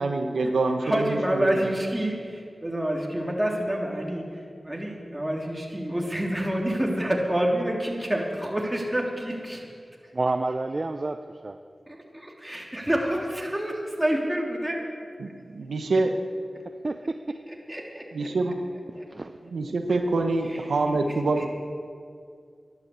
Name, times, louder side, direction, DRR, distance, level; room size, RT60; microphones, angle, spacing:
voice 1, 0.0-1.6 15.2-16.1 18.1-18.6 19.5-21.4, right 3 dB, 90° right, 5 dB, 1.0 m, -26 dB
voice 2, 0.8-4.2 4.6-9.7 11.9-14.8 17.7-18.3 19.0-19.1 20.5-20.6 21.0-21.1, right 1 dB, 15° right, -1 dB, 3.3 m, -28 dB
voice 3, 10.1-11.6 16.8-17.4 19.1-19.4, right 2 dB, 50° right, 7 dB, 0.6 m, -29 dB
12.0 x 11.5 x 8.1 m, 2.2 s
cardioid pair, 40°, 0 cm